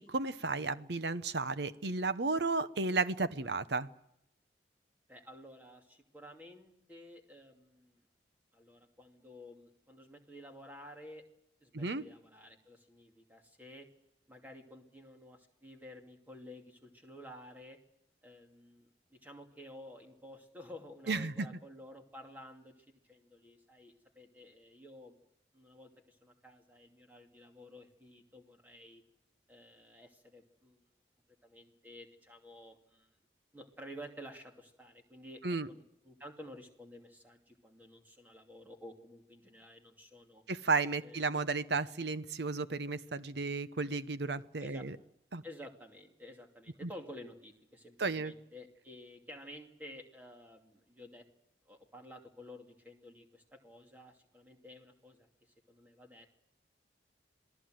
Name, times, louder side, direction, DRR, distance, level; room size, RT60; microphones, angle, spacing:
voice 1, 0.0-3.9 11.7-12.0 21.1-21.5 35.4-35.7 40.5-45.0 45.3-45.4 46.8-46.9 48.0-48.3, right 3 dB, 70° right, 13 dB, 0.9 m, -33 dB
voice 2, 5.1-8.0 8.5-11.2 11.6-13.9 14.3-17.8 18.2-25.1 25.5-29.0 29.5-30.8 31.4-33.1 33.5-40.4 41.0-41.2 44.6-44.8 45.4-51.3 51.7-55.3 55.7-56.4, equal, 10° right, 2 dB, 2.6 m, -52 dB
27.0 x 18.5 x 7.8 m, 0.81 s
head